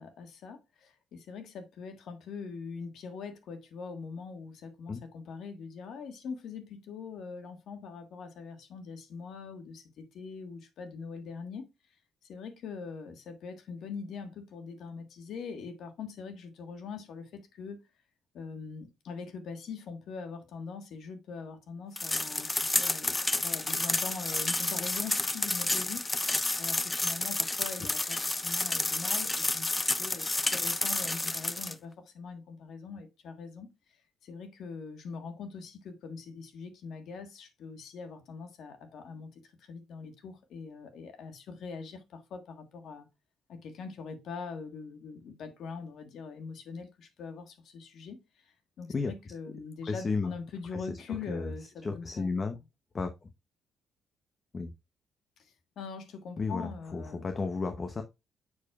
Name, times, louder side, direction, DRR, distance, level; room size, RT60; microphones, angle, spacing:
voice 1, 0.0-11.6 12.2-17.8 18.3-33.7 34.2-43.1 43.5-52.3 55.4-57.3, left 5 dB, 70° left, 1.5 m, -43 dB
sound 1, 22.0-31.7, left 2 dB, 15° left, 0.5 m, -30 dB
voice 2, 49.9-50.3 50.7-51.5 51.8-52.6 52.9-53.3 54.5-54.7 56.4-58.0, left 4 dB, 35° left, 0.8 m, -33 dB
7.2 x 6.3 x 2.4 m
cardioid pair, 90°, 0 cm